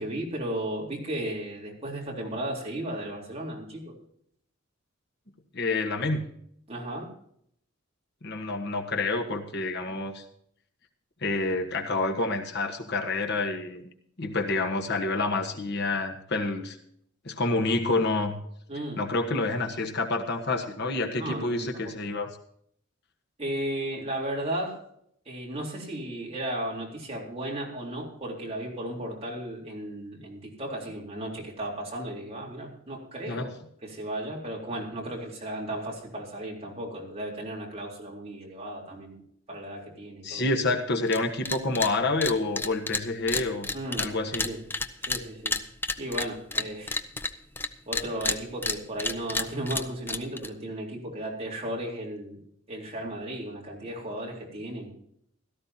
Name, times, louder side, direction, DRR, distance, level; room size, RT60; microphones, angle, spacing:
voice 1, 0.0-4.0 6.7-7.1 18.7-19.0 21.2-21.6 23.4-24.8 25.3-33.5 33.8-39.2 39.5-40.5 43.7-44.1 44.4-44.6 45.0-45.6 46.0-46.9 47.9-52.4 52.7-54.9, right 1 dB, 30° right, -2 dB, 3.8 m, -35 dB
voice 2, 5.5-6.2 8.2-10.2 11.2-13.8 14.2-16.8 17.2-18.3 19.0-22.3 33.3-33.5 40.2-43.7 44.0-44.5, left 2 dB, 55° left, 4 dB, 1.5 m, -28 dB
sound 1, 41.1-41.2 41.5-41.9 42.2-47.7 47.9-50.5, left 3 dB, 10° left, 0.6 m, -30 dB
17.0 x 13.5 x 2.9 m, 0.68 s
head